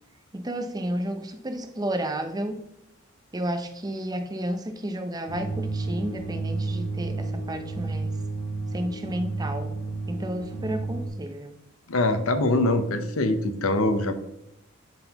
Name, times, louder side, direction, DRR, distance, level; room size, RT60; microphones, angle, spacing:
voice 1, 0.3-2.6 3.3-8.1 8.7-9.8 10.1-11.6, right 1 dB, 20° right, 6 dB, 0.6 m, -32 dB
sound 1, 5.3-11.1, right 3 dB, 55° left, 1.3 m, -31 dB
voice 2, 11.9-14.2, left 2 dB, 80° left, 9 dB, 0.8 m, -23 dB
11.5 x 4.0 x 2.9 m, 0.84 s
head